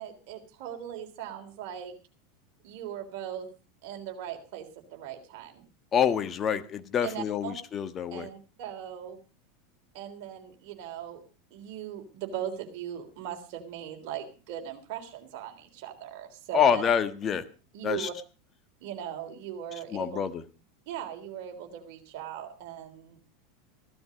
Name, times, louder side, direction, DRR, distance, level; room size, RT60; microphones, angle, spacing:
voice 1, 0.0-1.9 2.6-3.5 3.8-5.7 7.0-7.5 8.1-9.2 9.9-11.2 11.5-16.8 17.7-18.1 18.8-20.2 20.9-23.2, right 10 dB, 55° right, 4 dB, 3.4 m, -39 dB
voice 2, 5.9-8.3 16.5-17.4 17.8-18.1 19.9-20.4, left 8 dB, 30° left, 11 dB, 1.4 m, -26 dB
16.0 x 12.0 x 5.1 m, 0.35 s
hypercardioid pair, 85°, 0 cm